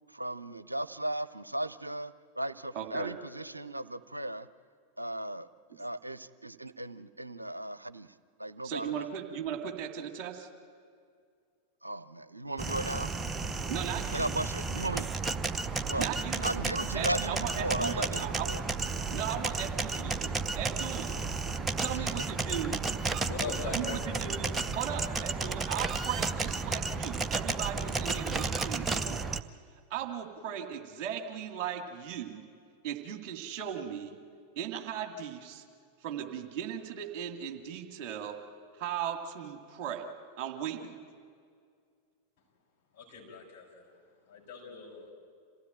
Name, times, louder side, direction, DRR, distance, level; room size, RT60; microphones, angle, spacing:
voice 1, 0.1-4.5 5.0-5.5 5.8-8.1 8.4-9.1 11.8-13.1 14.1-15.1 15.9-16.1 16.4-18.6 21.9-22.1, right 1 dB, 85° right, 15 dB, 0.6 m, -36 dB
voice 2, 2.7-3.1 8.6-10.5 13.7-14.4 16.0-16.5 16.9-18.6 19.1-21.2 21.8-22.8 23.6-29.3 29.9-32.4 32.8-34.2 34.6-35.6 36.0-38.4 38.8-40.1 40.4-41.0, right 9 dB, 40° right, 5 dB, 2.2 m, -37 dB
sound 1, 12.6-29.4, right 4 dB, 15° right, 0.7 m, -33 dB
voice 3, 23.2-24.1 42.9-43.8 44.3-45.1, left 5 dB, 50° left, -2 dB, 6.5 m, -41 dB
27.5 x 16.0 x 9.1 m, 2.2 s
figure-of-eight pair, 90°, 0 cm